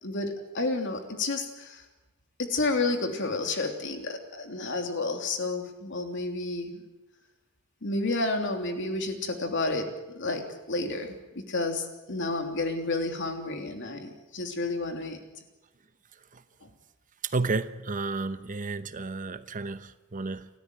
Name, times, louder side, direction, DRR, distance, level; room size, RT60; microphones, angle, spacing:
voice 1, 0.0-1.8 2.4-6.8 7.8-15.2, left 2 dB, 60° left, 3.2 m, -31 dB
voice 2, 17.3-20.5, right 3 dB, 40° right, 0.9 m, -31 dB
29.5 x 13.5 x 9.5 m
head